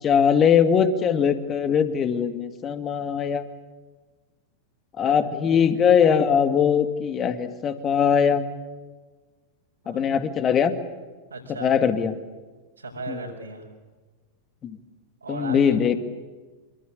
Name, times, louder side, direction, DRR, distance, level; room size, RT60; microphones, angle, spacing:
voice 1, 0.0-3.5 5.0-8.5 9.9-10.8 11.6-12.2 13.1-13.2 14.6-14.8 15.3-16.0, left 7 dB, 25° left, 10 dB, 2.3 m, -21 dB
voice 2, 11.3-11.7 12.8-13.7 15.2-15.8, right 3 dB, 80° right, -3 dB, 5.5 m, -36 dB
27.0 x 24.5 x 8.4 m, 1.3 s
figure-of-eight pair, 90°, 0 cm